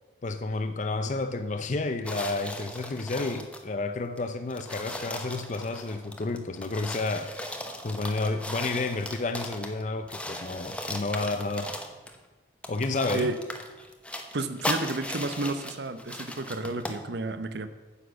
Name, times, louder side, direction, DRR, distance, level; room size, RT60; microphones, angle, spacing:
voice 1, 0.2-7.3 7.8-11.7 12.7-13.3, left 3 dB, 40° left, 8 dB, 0.5 m, -30 dB
sound 1, 2.0-3.7 4.2-4.3 4.5-9.8 10.1-12.2 12.6-17.0, left 1 dB, 5° left, 0.8 m, -37 dB
voice 2, 14.3-17.7, right 2 dB, 65° right, 11 dB, 0.7 m, -31 dB
9.6 x 6.2 x 8.1 m, 1.3 s
head